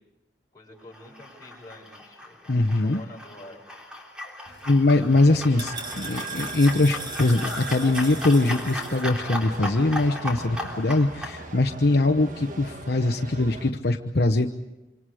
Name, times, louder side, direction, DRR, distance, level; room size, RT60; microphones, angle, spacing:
voice 1, 0.5-3.6, left 1 dB, 20° left, -2 dB, 6.9 m, -47 dB
sound 1, 0.9-11.4, left 1 dB, 5° right, 3.5 m, -37 dB
voice 2, 2.5-3.0 4.7-14.5, left 2 dB, 60° left, 4 dB, 1.0 m, -22 dB
sound 2, 4.5-9.0, right 3 dB, 25° right, 4.8 m, -38 dB
sound 3, 5.2-13.7, right 2 dB, 45° right, 1.5 m, -41 dB
26.5 x 26.0 x 5.0 m, 1.0 s
head